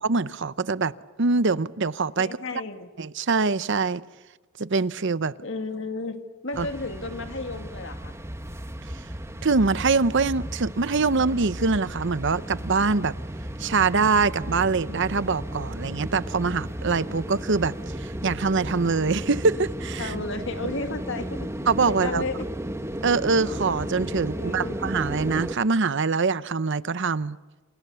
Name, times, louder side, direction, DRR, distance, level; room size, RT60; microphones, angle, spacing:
voice 1, 0.1-0.9 1.2-2.3 3.0-4.0 4.6-5.3 6.6-6.7 9.4-13.1 13.6-17.7 18.2-20.1 21.7-22.2 23.0-27.4, right 4 dB, 60° right, 0.8 m, -24 dB
voice 2, 2.2-2.9 5.4-8.2 20.0-21.5 21.9-22.5 24.1-24.8, left 3 dB, 65° left, 2.3 m, -33 dB
sound 1, 6.5-25.6, equal, 15° right, 1.3 m, -34 dB
29.5 x 29.0 x 7.0 m
head